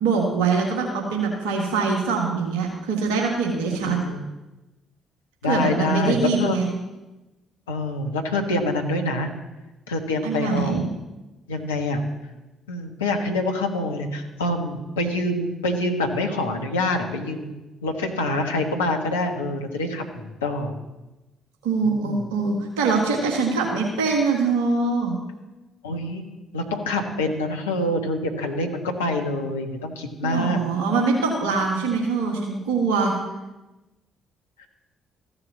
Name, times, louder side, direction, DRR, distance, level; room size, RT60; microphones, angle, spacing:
voice 1, 0.0-4.0 5.4-6.7 10.2-10.9 21.6-25.2 30.2-33.1, right 4 dB, 70° right, 0 dB, 1.7 m, -23 dB
voice 2, 3.7-4.2 5.4-6.6 7.7-9.3 9.9-10.9 11.5-12.0 12.7-20.8 21.8-22.2 25.8-26.2 26.5-30.6, left 2 dB, 80° left, 3 dB, 1.3 m, -26 dB
14.5 x 6.8 x 7.2 m, 1.1 s
figure-of-eight pair, 45°, 0 cm